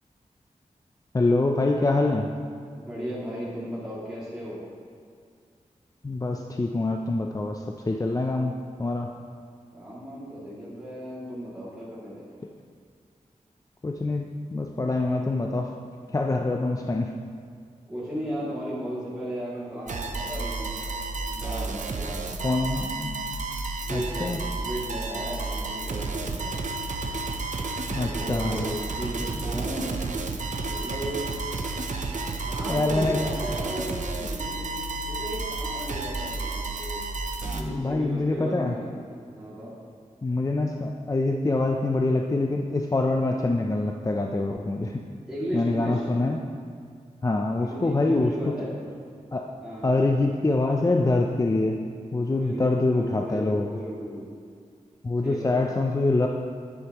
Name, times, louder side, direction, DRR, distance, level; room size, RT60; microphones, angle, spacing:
voice 1, 1.1-2.3 6.0-8.5 8.8-9.1 13.8-15.7 16.1-17.1 22.4-23.3 23.9-24.4 27.9-28.7 29.3-29.7 32.7-33.2 37.4-38.7 40.2-45.0 45.5-46.4 47.2-48.5 49.3-49.5 49.8-51.8 52.1-53.8 55.0-56.3, left 2 dB, 25° left, 2 dB, 0.5 m, -25 dB
voice 2, 2.8-4.6 9.7-12.2 17.9-21.0 21.3-22.6 23.8-26.0 26.3-26.5 27.9-30.1 30.6-31.3 32.4-37.0 37.5-39.0 39.3-39.7 45.3-46.1 47.5-48.8 49.6-50.0 52.2-54.3 55.2-55.6, equal, 5° right, -10 dB, 2.5 m, -35 dB
sound 1, 19.9-37.6, right 3 dB, 70° right, 0.7 m, -31 dB
10.0 x 9.2 x 3.0 m, 2.2 s
wide cardioid pair, 100°, 13 cm